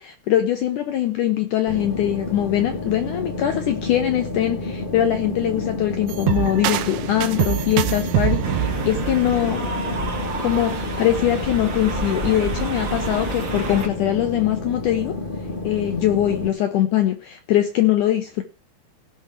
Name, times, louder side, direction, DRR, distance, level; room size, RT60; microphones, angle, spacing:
voice 1, 0.0-9.7 10.4-15.2 15.6-18.4, left 12 dB, 75° left, 7 dB, 1.8 m, -22 dB
sound 1, 1.7-16.5, left 2 dB, 35° left, 0.8 m, -30 dB
sound 2, 6.1-10.0, right 15 dB, 80° right, 2.5 m, -25 dB
sound 3, 8.4-13.9, right 2 dB, 45° right, 1.7 m, -29 dB
18.0 x 6.0 x 4.6 m, 0.31 s
omnidirectional pair, 4.6 m